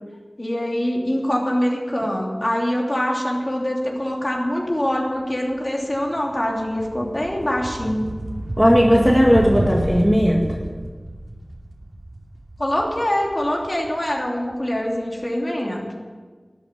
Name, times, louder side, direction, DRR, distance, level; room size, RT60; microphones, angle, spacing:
voice 1, 0.4-8.1 12.6-15.8, equal, 35° left, -1 dB, 3.0 m, -24 dB
sound 1, 5.1-5.3 5.7-14.5, right 1 dB, 55° right, 2.5 m, -31 dB
voice 2, 8.6-10.5, equal, 5° left, -1 dB, 2.0 m, -16 dB
12.5 x 8.8 x 8.6 m, 1.5 s
wide cardioid pair, 45°, 0 cm